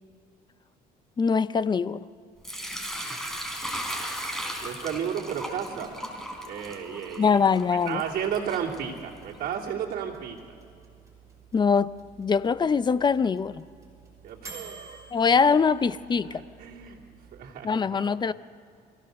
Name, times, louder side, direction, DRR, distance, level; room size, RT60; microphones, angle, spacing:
voice 1, 1.2-2.0 7.2-8.0 11.5-11.9 12.2-13.6 15.1-16.4 17.6-18.3, left 5 dB, 25° left, 16 dB, 0.5 m, -23 dB
Sink (filling or washing) / Liquid, 2.4-9.4, equal, ahead, 3.5 m, -37 dB
voice 2, 4.6-5.9 6.5-7.4 7.7-10.4 14.2-15.2 16.3-17.0 17.3-18.0, right 8 dB, 60° right, -4 dB, 3.0 m, -33 dB
sound 1, 8.3-17.4, right 4 dB, 20° right, 6.0 m, -51 dB
24.5 x 16.0 x 6.7 m, 2.4 s
cardioid pair, 110°, 17 cm